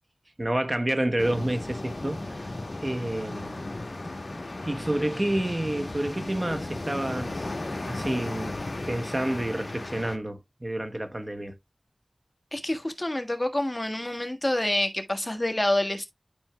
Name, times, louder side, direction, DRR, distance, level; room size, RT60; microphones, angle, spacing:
voice 1, 0.4-2.5 2.8-3.6 4.7-7.5 7.8-8.6 8.9-11.6, right 1 dB, 35° right, 1.0 m, -29 dB
sound 1, 1.2-10.2, left 2 dB, 60° left, 1.3 m, -35 dB
voice 2, 12.5-16.1, left 1 dB, 25° left, 1.5 m, -27 dB
11.5 x 4.4 x 2.2 m
wide cardioid pair, 40°, 0 cm